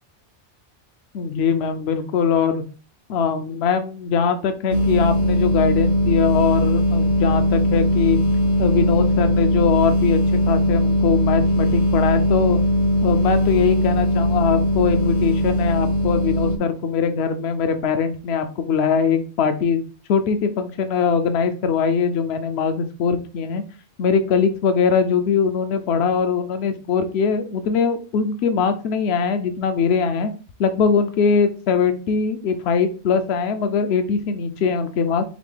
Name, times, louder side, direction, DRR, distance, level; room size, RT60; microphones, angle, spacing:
voice 1, 1.1-2.6 3.1-8.2 8.6-12.6 13.0-19.8 20.1-23.6 24.0-30.3 30.6-35.2, left 6 dB, 70° left, 8 dB, 0.8 m, -21 dB
sound 1, 4.7-16.6, equal, 45° left, 0.6 m, -19 dB
4.1 x 3.0 x 3.3 m, 0.36 s
omnidirectional pair, 1.2 m